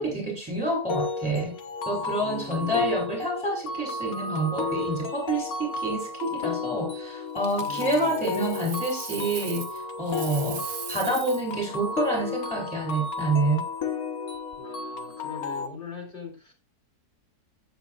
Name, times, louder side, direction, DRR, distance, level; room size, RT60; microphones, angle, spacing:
voice 1, 0.0-1.5 1.9-13.6, right 1 dB, 5° right, 3.3 m, -28 dB
sound 1, 0.9-15.7, left 4 dB, 60° left, 1.6 m, -33 dB
voice 2, 2.2-2.9 7.7-8.2 14.6-16.5, left 2 dB, 30° left, 4.1 m, -41 dB
Coin (dropping), 7.4-9.8 10.1-11.5 14.3-14.6, right 6 dB, 40° right, 0.8 m, -39 dB
16.0 x 8.1 x 2.4 m
omnidirectional pair, 1.7 m